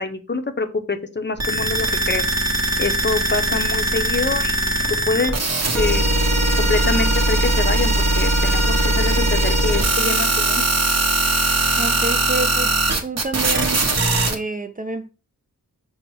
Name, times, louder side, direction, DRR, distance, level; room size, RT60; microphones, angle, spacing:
voice 1, 0.0-2.2 2.8-4.7 5.1-5.4 5.7-6.1 6.6-10.7, left 3 dB, 30° left, 0.6 m, -25 dB
sound 1, 1.4-14.3, right 2 dB, 50° right, 0.9 m, -20 dB
voice 2, 11.8-12.7 13.0-13.8 14.3-15.1, right 2 dB, 25° right, 0.4 m, -28 dB
5.4 x 2.1 x 4.5 m
wide cardioid pair, 75°, 34 cm